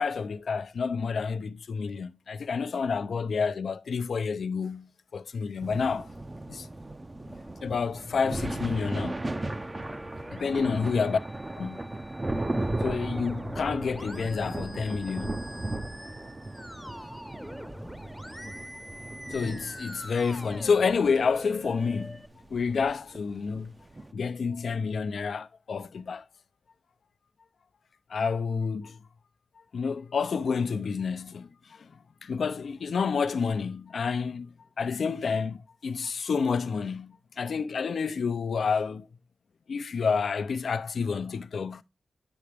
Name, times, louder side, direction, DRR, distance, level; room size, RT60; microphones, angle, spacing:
voice 1, 0.0-6.1 6.5-6.7 7.6-9.2 10.3-11.2 11.6-11.9 12.8-15.4 19.3-22.2 22.5-23.7 24.1-26.2 28.1-29.0 29.7-31.9 32.2-39.1 39.7-41.8, left 5 dB, 75° left, 0.5 m, -29 dB
sound 1, 5.6-24.1, right 2 dB, 25° right, 0.6 m, -36 dB
Musical instrument, 9.2-22.3, left 1 dB, 5° left, 0.7 m, -45 dB
9.6 x 5.8 x 3.3 m
cardioid pair, 70°, 0 cm